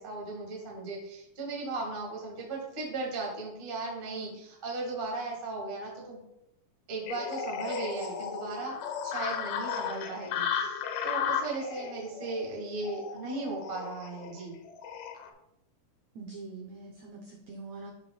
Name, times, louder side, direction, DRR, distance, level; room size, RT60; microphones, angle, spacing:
voice 1, 0.0-6.2 6.9-8.7 9.0-14.6, right 3 dB, 50° right, -2 dB, 0.6 m, -37 dB
sound 1, 7.1-15.3, left 7 dB, 80° left, 2.1 m, -35 dB
voice 2, 16.1-17.9, right 3 dB, 85° right, 0 dB, 1.5 m, -44 dB
12.0 x 4.8 x 2.2 m, 0.83 s
omnidirectional pair, 4.1 m